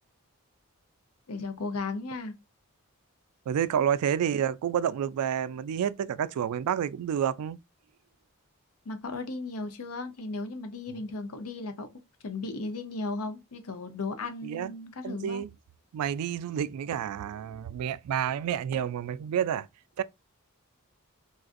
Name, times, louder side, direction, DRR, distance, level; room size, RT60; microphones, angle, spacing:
voice 1, 1.3-2.3 8.8-11.9 12.2-15.4, left 3 dB, 75° left, 0.7 m, -35 dB
voice 2, 3.5-7.6 14.4-14.7 15.0-15.5 15.9-19.7 20.0-20.1, right 9 dB, 80° right, 0.3 m, -29 dB
3.8 x 2.4 x 2.4 m
head